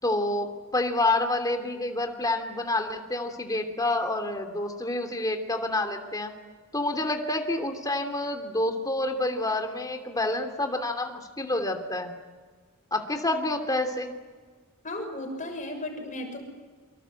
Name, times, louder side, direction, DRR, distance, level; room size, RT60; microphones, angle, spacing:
voice 1, 0.0-6.3 6.7-12.1 12.9-14.1, left 2 dB, 15° left, 5 dB, 3.0 m, -28 dB
voice 2, 14.8-16.4, left 1 dB, 35° left, 4 dB, 6.9 m, -35 dB
28.5 x 25.5 x 7.8 m, 1.5 s
head